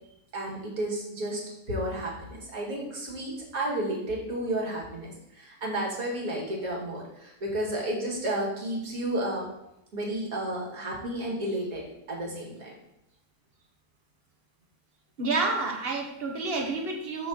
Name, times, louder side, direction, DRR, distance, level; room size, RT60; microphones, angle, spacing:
voice 1, 0.3-1.4 1.7-9.5 9.9-12.7, right 1 dB, 60° right, -3 dB, 2.3 m, -32 dB
voice 2, 15.2-17.3, right 3 dB, 40° right, 1 dB, 1.3 m, -29 dB
6.0 x 4.1 x 6.3 m, 0.85 s
omnidirectional pair, 1.7 m